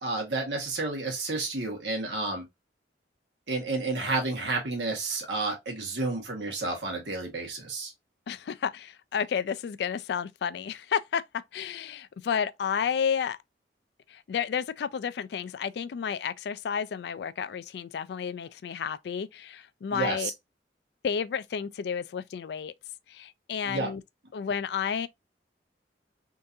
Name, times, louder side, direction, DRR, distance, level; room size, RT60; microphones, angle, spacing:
voice 1, 0.0-2.4 3.5-7.9 19.9-20.3 23.7-23.9, right 3 dB, 80° right, 1.5 m, -31 dB
voice 2, 8.3-11.2 11.5-13.4 14.1-20.3 21.0-22.7 23.1-24.0 24.3-25.1, left 7 dB, 65° left, 0.3 m, -31 dB
3.8 x 2.6 x 2.6 m
head